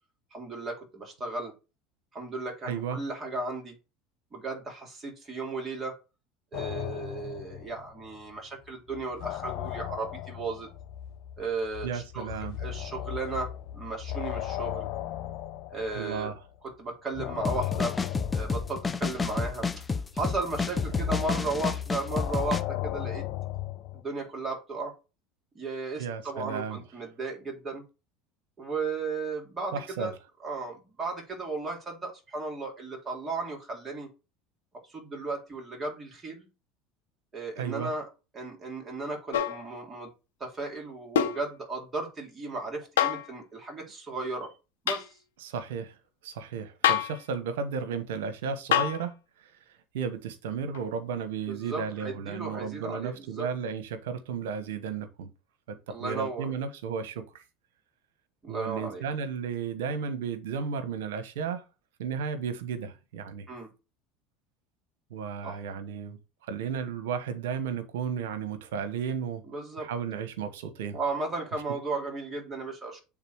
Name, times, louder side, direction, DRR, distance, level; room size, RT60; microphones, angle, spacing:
voice 1, 0.3-1.5 2.1-3.8 4.3-6.0 6.5-10.7 11.4-14.9 15.7-16.3 16.8-18.0 18.3-19.7 20.1-23.2 23.9-24.9 25.6-27.8 28.6-30.1 30.4-34.1 34.9-36.5 37.3-38.1 38.3-40.1 40.4-44.5 44.8-45.2 51.5-53.5 55.9-56.5 58.4-59.0 63.5-63.7 65.4-65.6 69.5-69.9 70.9-73.0, right 3 dB, 25° right, 3.6 m, -35 dB
voice 2, 2.7-3.0 11.8-12.6 15.9-16.4 26.0-26.8 29.7-30.1 37.6-37.9 45.4-46.0 46.2-49.5 49.9-55.3 55.7-57.4 58.5-61.6 62.0-63.5 65.1-69.4 69.8-71.0, right 6 dB, 80° right, 1.0 m, -34 dB
sound 1, 6.5-8.4 8.7-16.6 17.1-24.0, left 12 dB, 65° left, 1.0 m, -37 dB
sound 2, 17.4-22.6, left 4 dB, 20° left, 0.7 m, -30 dB
sound 3, 39.3-39.6 41.2-41.4 43.0-43.3 44.9-45.1 46.8-47.2 48.7-49.0 50.7-50.8, left 10 dB, 85° left, 0.9 m, -25 dB
8.0 x 3.7 x 4.5 m
hypercardioid pair, 90°, 0 cm